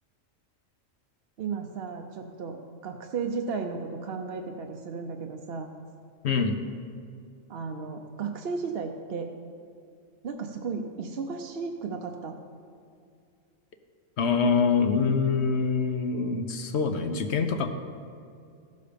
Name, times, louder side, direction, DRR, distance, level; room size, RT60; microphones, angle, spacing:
voice 1, 1.4-5.7 7.5-9.3 10.2-12.4, right 5 dB, 55° right, 3 dB, 0.8 m, -34 dB
voice 2, 6.2-6.6 14.2-17.7, left 5 dB, 60° left, 7 dB, 1.0 m, -25 dB
14.5 x 6.7 x 5.1 m, 2.3 s
omnidirectional pair, 1.3 m